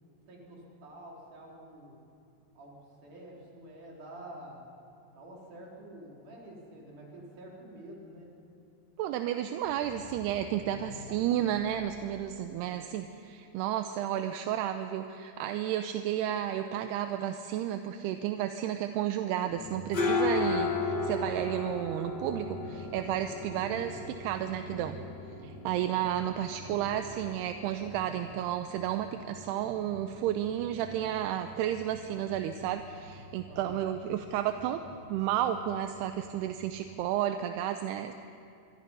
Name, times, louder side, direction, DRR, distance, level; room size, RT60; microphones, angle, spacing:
voice 1, 0.3-2.0 2.5-4.6 5.1-8.3 10.6-11.2 12.6-12.8 33.5-33.8, right 1 dB, 45° right, -2 dB, 5.0 m, -49 dB
voice 2, 9.0-25.0 25.4-34.8 35.1-38.1, right 11 dB, 80° right, 8 dB, 2.6 m, -32 dB
sound 1, 9.7-12.8, left 8 dB, 75° left, 2.4 m, -50 dB
sound 2, 19.5-37.0, left 3 dB, 40° left, 1.6 m, -37 dB
25.0 x 24.5 x 5.5 m, 2.7 s
omnidirectional pair, 5.1 m